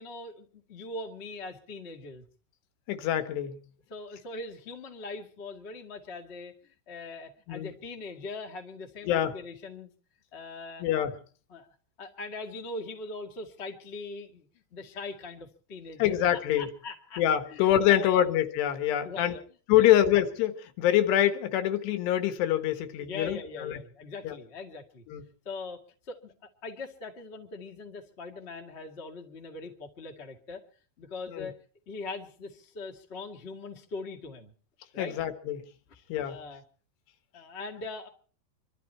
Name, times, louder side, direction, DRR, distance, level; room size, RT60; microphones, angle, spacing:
voice 1, 0.0-2.2 3.9-9.9 10.3-10.9 11.5-11.7 12.0-18.2 19.0-19.4 19.8-20.0 23.0-25.0 25.4-26.3 26.6-30.6 31.0-31.5 31.9-34.5 34.9-35.2 36.3-36.6 37.3-38.1, left 3 dB, 35° left, 3 dB, 0.9 m, -41 dB
voice 2, 2.9-3.6 7.5-7.7 9.1-9.3 10.8-11.1 16.0-16.7 17.2-19.4 19.7-23.8 24.3-24.4 25.1-25.2 31.3-31.5 35.0-35.6 36.1-36.4, left 12 dB, 80° left, 10 dB, 3.4 m, -25 dB
25.5 x 13.0 x 4.3 m, 0.41 s
omnidirectional pair, 4.8 m